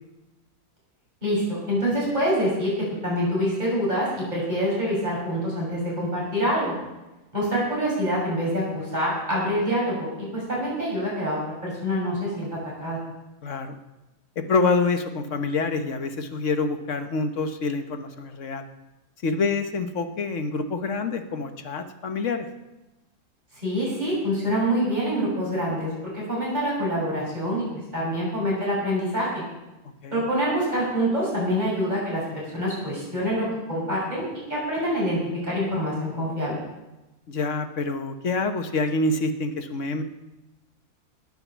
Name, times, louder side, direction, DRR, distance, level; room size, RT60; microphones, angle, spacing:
voice 1, 1.2-6.7 7.3-12.5 12.8-13.0 23.6-25.9 26.1-27.7 27.9-29.4 30.1-34.2 34.5-36.6, equal, 30° right, -6 dB, 7.0 m, -26 dB
voice 2, 13.4-13.8 14.4-18.7 19.2-22.5 30.0-30.2 37.3-40.0, left 3 dB, 60° left, 7 dB, 1.4 m, -26 dB
19.5 x 6.8 x 7.3 m, 1.0 s
omnidirectional pair, 1.5 m